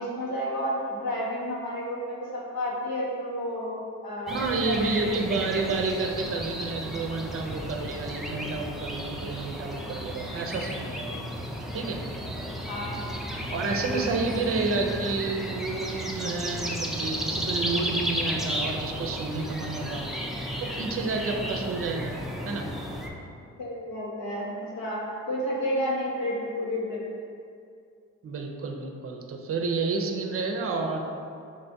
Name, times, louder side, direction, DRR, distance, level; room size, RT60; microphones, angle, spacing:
voice 1, 0.0-5.1 12.6-13.0 13.6-14.3 23.6-27.0, equal, 75° left, -6 dB, 1.3 m, -31 dB
sound 1, 4.3-23.1, equal, ahead, 0.5 m, -34 dB
voice 2, 4.3-11.2 11.7-12.0 13.5-20.0 20.6-22.2 22.5-22.7 28.2-31.0, right 3 dB, 40° right, 3 dB, 0.6 m, -30 dB
5.3 x 3.3 x 2.6 m, 2.4 s
supercardioid pair, 60°, 34 cm